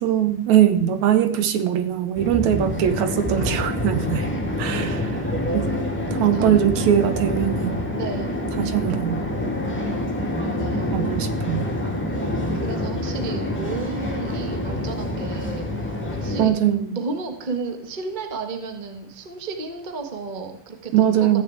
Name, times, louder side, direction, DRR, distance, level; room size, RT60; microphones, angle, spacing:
voice 1, 0.0-4.3 4.6-5.1 5.5-5.7 6.2-7.8 8.6-9.2 10.9-11.6 16.4-17.0 20.9-21.4, right 10 dB, 70° right, 9 dB, 2.2 m, -21 dB
sound 1, 2.1-16.5, left 1 dB, 5° left, 1.7 m, -26 dB
voice 2, 6.1-6.7 7.9-8.3 10.5-11.0 12.5-16.5 16.9-21.4, right 4 dB, 35° right, 5 dB, 0.7 m, -33 dB
14.5 x 6.9 x 8.5 m, 0.74 s
omnidirectional pair, 3.6 m